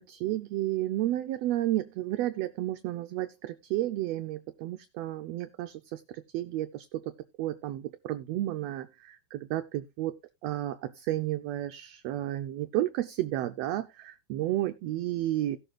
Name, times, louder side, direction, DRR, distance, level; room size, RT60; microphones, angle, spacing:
voice 1, 0.0-15.6, right 14 dB, 75° right, 1.6 m, -32 dB
17.5 x 6.8 x 2.4 m
omnidirectional pair, 3.4 m